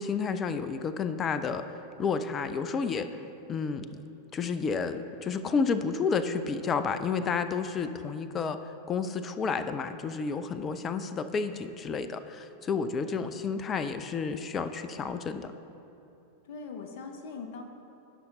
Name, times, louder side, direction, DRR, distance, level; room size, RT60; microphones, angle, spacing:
voice 1, 0.0-1.6 2.0-3.1 3.5-4.0 4.3-8.6 8.9-15.5, left 5 dB, 25° left, 11 dB, 0.5 m, -31 dB
voice 2, 13.0-13.4 16.4-17.6, left 4 dB, 50° left, 5 dB, 1.1 m, -42 dB
17.5 x 5.8 x 3.7 m, 2.8 s
figure-of-eight pair, 90°, 0 cm